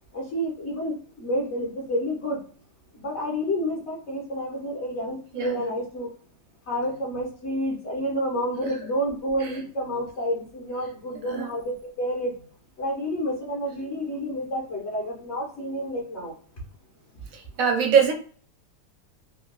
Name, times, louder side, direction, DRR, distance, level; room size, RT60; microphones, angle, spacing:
voice 1, 0.1-2.4 2.9-6.1 6.7-12.4 12.8-16.3, equal, 45° left, -2 dB, 1.2 m, -29 dB
voice 2, 17.3-18.1, right 7 dB, 65° right, 4 dB, 0.9 m, -22 dB
3.7 x 2.5 x 2.3 m, 0.43 s
omnidirectional pair, 1.9 m